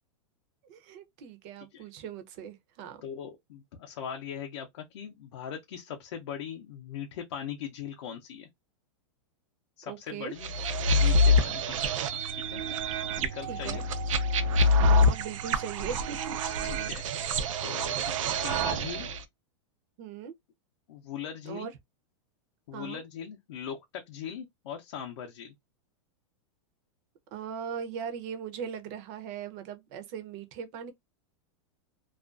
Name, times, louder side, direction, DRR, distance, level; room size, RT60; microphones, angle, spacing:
voice 1, 0.7-3.0 9.9-10.3 13.5-13.8 14.8-16.3 20.0-20.3 21.4-21.7 22.7-23.0 27.3-30.9, right 7 dB, 35° right, 0.5 m, -39 dB
voice 2, 3.0-8.5 9.8-10.5 10.9-13.9 16.4-19.1 20.9-21.7 22.7-25.5, left 8 dB, 65° left, 0.5 m, -40 dB
sound 1, 10.4-19.2, left 1 dB, 85° right, 0.5 m, -26 dB
2.4 x 2.2 x 2.3 m
supercardioid pair, 165°, 16 cm